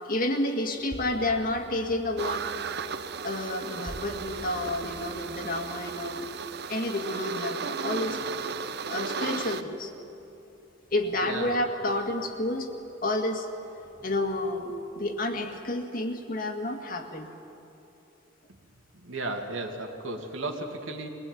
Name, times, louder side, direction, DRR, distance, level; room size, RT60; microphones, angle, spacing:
voice 1, 0.0-2.5 3.2-6.3 6.7-8.2 8.9-9.9 10.9-12.7 13.0-13.5 14.0-17.3, left 1 dB, 45° left, 4 dB, 2.1 m, -30 dB
sound 1, 0.7-15.9, right 1 dB, 10° right, 1.1 m, -51 dB
sound 2, 2.2-9.6, right 6 dB, 55° right, 0.7 m, -35 dB
voice 2, 11.2-11.5 18.9-21.1, right 2 dB, 80° right, 2 dB, 2.6 m, -34 dB
22.5 x 20.0 x 9.3 m, 2.9 s
head